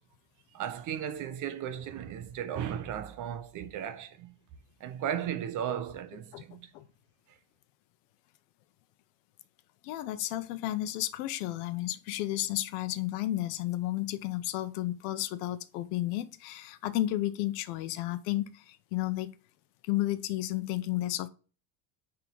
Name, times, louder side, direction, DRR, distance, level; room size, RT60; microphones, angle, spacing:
voice 1, 0.5-4.3 4.8-6.7, right 9 dB, 40° right, 1.1 m, -35 dB
voice 2, 9.8-19.3 19.8-21.3, left 15 dB, 80° left, 1.0 m, -32 dB
9.5 x 3.9 x 4.6 m
cardioid pair, 155°, 45 cm